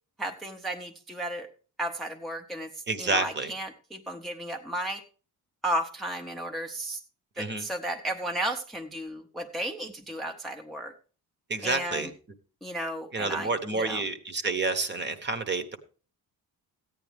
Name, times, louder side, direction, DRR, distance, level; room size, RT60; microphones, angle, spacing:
voice 1, 0.2-1.5 1.8-2.7 3.0-5.0 5.6-7.0 7.4-10.9 11.6-12.1 12.6-14.0, right 1 dB, ahead, 3 dB, 0.6 m, -34 dB
voice 2, 2.9-3.5 7.4-7.7 11.5-12.1 13.1-15.8, right 3 dB, 30° right, 10 dB, 0.9 m, -29 dB
14.5 x 9.2 x 3.4 m, 0.38 s
cardioid pair, 175°, 38 cm